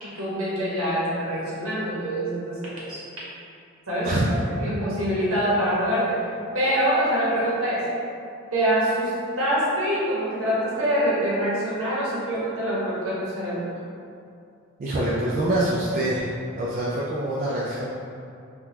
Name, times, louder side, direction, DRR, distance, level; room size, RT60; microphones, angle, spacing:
voice 1, 0.0-3.0 3.9-6.2 6.5-7.8 8.5-13.6, equal, 75° right, -8 dB, 1.1 m, -25 dB
voice 2, 14.8-16.3 16.5-17.9, right 1 dB, 40° right, -6 dB, 0.3 m, -25 dB
3.6 x 2.3 x 2.8 m, 2.4 s
head